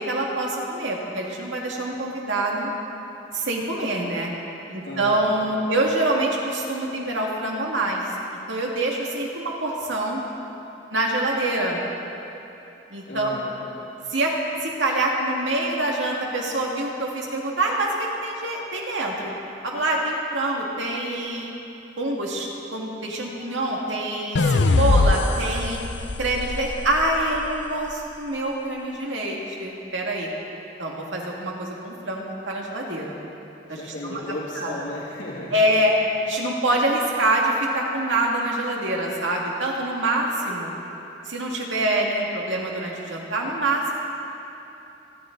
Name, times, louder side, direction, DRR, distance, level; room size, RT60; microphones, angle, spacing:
voice 1, 0.0-2.7 3.3-4.3 4.7-8.0 8.5-10.2 10.9-11.9 12.9-13.3 14.1-14.3 14.6-19.3 19.6-21.5 22.0-25.8 26.2-30.3 30.8-33.2 33.7-34.2 34.6-34.7 35.5-35.9 36.3-40.7 41.3-44.0, right 1 dB, 80° right, -2 dB, 2.2 m, -25 dB
voice 2, 4.8-5.4 13.0-13.6 33.7-35.6, left 1 dB, 90° left, -7 dB, 2.9 m, -35 dB
electric boom, 24.4-27.6, left 3 dB, 75° left, 0.6 m, -22 dB
29.0 x 10.5 x 4.0 m, 3.0 s
head